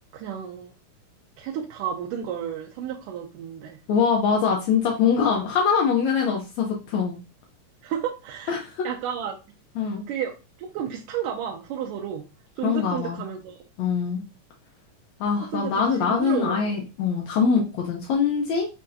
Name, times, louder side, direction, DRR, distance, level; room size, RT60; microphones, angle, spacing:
voice 1, 0.1-0.7 1.4-3.8 7.8-8.6 8.8-9.4 10.1-12.3 12.6-13.6 15.5-16.8, right 8 dB, 90° right, 1 dB, 2.2 m, -32 dB
voice 2, 3.9-7.2 8.5-8.9 9.8-10.0 12.6-13.2 13.8-14.2 15.2-18.7, left 6 dB, 70° left, 0 dB, 1.8 m, -23 dB
5.6 x 3.6 x 2.6 m, 0.30 s
omnidirectional pair, 3.7 m